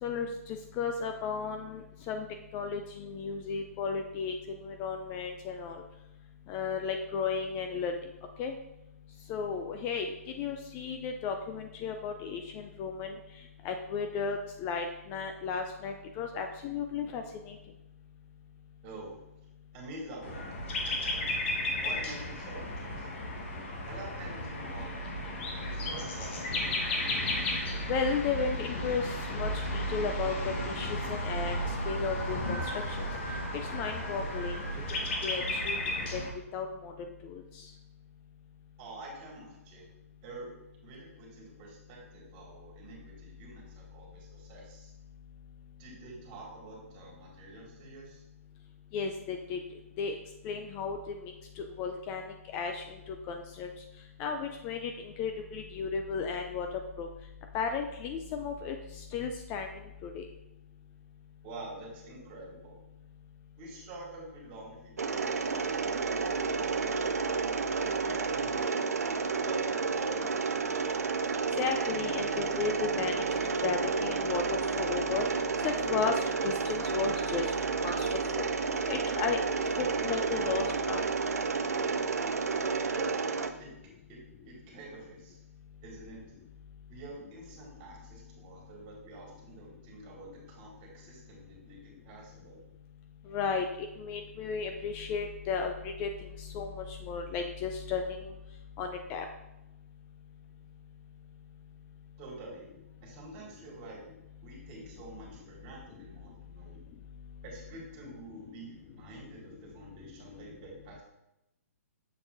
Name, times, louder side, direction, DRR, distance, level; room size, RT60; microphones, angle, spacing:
voice 1, 0.0-2.3 2.5-5.8 6.5-8.0 8.4-8.5 9.3-10.1 10.4-13.2 13.6-17.6 27.9-30.3 30.7-33.0 33.7-34.5 35.2-35.8 36.1-36.2 36.5-36.9 37.3-37.4 48.9-49.6 50.0-50.2 50.4-52.3 52.5-52.8 53.3-53.7 54.2-56.7 57.0-57.1 57.5-58.8 59.1-59.7 60.0-60.2 71.6-73.3 73.6-74.4 74.7-75.3 75.6-77.5 77.8-78.1 78.4-78.5 78.9-79.4 79.8-81.0 93.3-96.1 96.4-98.3 98.8-99.2, left 5 dB, 25° left, 5 dB, 0.4 m, -34 dB
voice 2, 19.7-20.5 21.8-23.3 23.9-24.9 25.7-27.2 38.8-39.9 40.2-40.5 40.8-44.9 45.8-48.2 61.4-62.8 63.6-67.2 67.8-68.8 69.4-70.8 82.8-83.2 83.6-83.7 84.1-85.4 85.8-86.2 86.9-91.8 92.0-92.6 102.2-102.7 103.0-104.0 104.4-106.8 107.4-111.0, right 2 dB, 35° right, -2 dB, 2.0 m, -47 dB
sound 1, 20.2-36.3, left 1 dB, 50° left, 1.2 m, -34 dB
Mechanisms, 65.0-83.5, right 5 dB, 85° right, 0.5 m, -31 dB
6.7 x 5.9 x 2.5 m, 0.90 s
hypercardioid pair, 140°, 8 cm